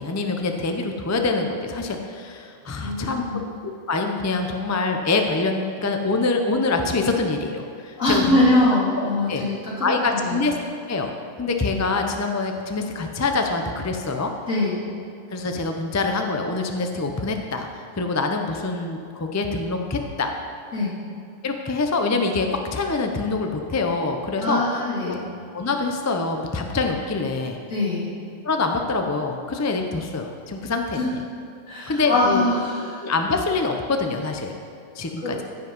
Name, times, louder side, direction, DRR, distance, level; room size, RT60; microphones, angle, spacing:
voice 1, 0.0-3.2 3.6-8.4 9.0-9.4 9.8-10.6 10.9-11.1 11.4-14.3 15.3-17.7 17.9-20.3 21.4-22.5 22.7-24.6 25.0-25.2 25.5-27.6 28.4-31.2 31.9-32.4 33.0-34.5 35.0-35.4, left 3 dB, 25° left, 4 dB, 0.4 m, -25 dB
voice 2, 2.8-3.5 8.0-9.9 10.2-10.4 14.5-14.8 20.7-20.9 24.4-25.2 27.7-28.1 30.9-31.1 31.7-33.1 35.2-35.3, left 1 dB, 65° left, -8 dB, 3.2 m, -23 dB
15.0 x 5.3 x 5.4 m, 2.4 s
omnidirectional pair, 1.4 m